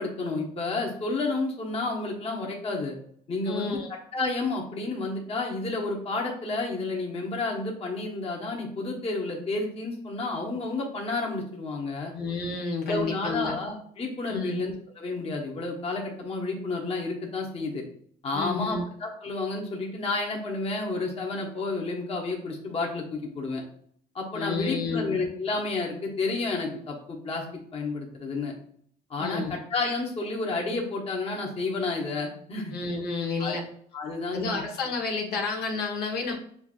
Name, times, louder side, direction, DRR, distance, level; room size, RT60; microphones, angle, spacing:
voice 1, 0.0-3.0 3.3-3.8 4.1-12.1 12.9-17.8 18.2-23.6 24.1-27.4 27.7-28.5 29.1-32.7 33.4-33.6 33.9-34.6, left 3 dB, 35° left, -1 dB, 1.2 m, -31 dB
voice 2, 3.5-3.9 12.1-13.5 14.3-14.6 18.3-18.8 24.3-25.2 29.2-29.5 32.7-33.6 34.3-36.4, left 4 dB, 70° left, -1 dB, 1.1 m, -30 dB
6.9 x 2.6 x 2.5 m, 0.64 s
cardioid pair, 110°, 17 cm